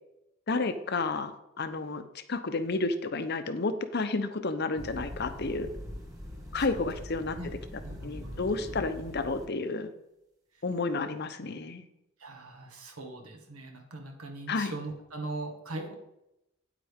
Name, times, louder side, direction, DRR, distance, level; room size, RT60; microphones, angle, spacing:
voice 1, 0.5-5.7 6.5-7.4 8.0-9.9 10.6-11.8 14.5-14.7, left 3 dB, 50° left, 10 dB, 0.7 m, -31 dB
sound 1, 4.8-9.5, left 1 dB, 15° right, 1.9 m, -42 dB
voice 2, 7.8-8.8 12.2-16.0, right 2 dB, 85° right, 2 dB, 1.9 m, -40 dB
9.1 x 8.7 x 3.6 m, 0.86 s
head